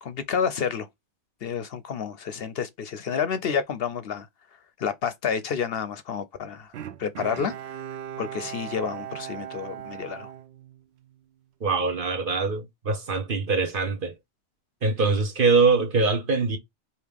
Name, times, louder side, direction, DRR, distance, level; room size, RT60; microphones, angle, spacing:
voice 1, 0.0-0.9 1.4-4.3 4.8-6.7 7.0-7.8 8.2-10.3, left 7 dB, 60° left, 0.8 m, -29 dB
Bowed string instrument, 6.7-11.2 11.7-11.8, right 10 dB, 70° right, 0.8 m, -38 dB
voice 2, 11.6-14.1 14.8-16.6, right 4 dB, 50° right, 1.0 m, -23 dB
4.9 x 2.8 x 3.4 m
omnidirectional pair, 1.2 m